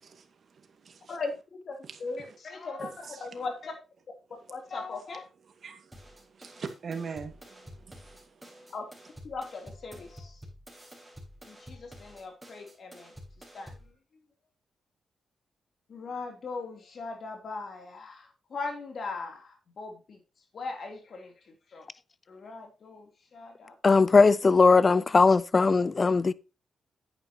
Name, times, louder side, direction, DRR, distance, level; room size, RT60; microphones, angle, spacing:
voice 1, 0.0-1.2 1.9-2.0 2.8-3.3 5.6-6.0 6.3-8.7, right 5 dB, 55° right, 2.0 m, -42 dB
voice 2, 1.6-3.7 4.5-5.2 8.7-8.9 9.2-10.4 11.5-13.1 13.5-13.8 15.9-20.2 20.5-21.3 21.7-21.9 22.3-24.0, left 3 dB, 55° left, 3.2 m, -39 dB
sound 1, 5.9-13.9, equal, 5° right, 5.3 m, -49 dB
voice 3, 23.8-26.3, left 4 dB, 35° left, 0.5 m, -19 dB
10.0 x 9.2 x 3.0 m
cardioid pair, 95°, 0 cm